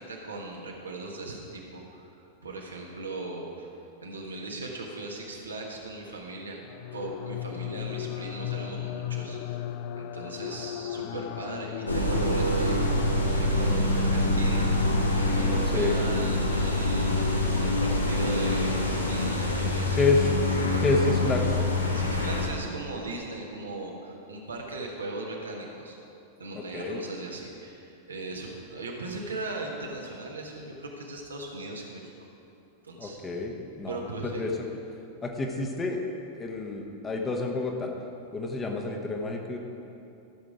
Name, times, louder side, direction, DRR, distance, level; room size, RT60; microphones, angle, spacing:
voice 1, 0.0-2.2 2.4-3.7 4.0-6.6 6.9-14.8 15.3-20.0 20.7-21.0 21.9-26.0 26.4-32.1 32.8-33.2 33.9-34.5, right 2 dB, 75° right, -1 dB, 1.4 m, -38 dB
sound 1, 6.6-13.6, left 12 dB, 45° left, 0.3 m, -36 dB
sound 2, 11.9-22.5, left 1 dB, 80° left, 1.1 m, -25 dB
voice 2, 20.8-21.4 26.5-27.0 33.0-34.0 34.4-34.5 35.2-36.0 36.3-37.9 38.3-39.6, left 3 dB, 20° left, 2 dB, 1.2 m, -28 dB
14.0 x 6.5 x 5.0 m, 2.8 s
figure-of-eight pair, 90°, 0 cm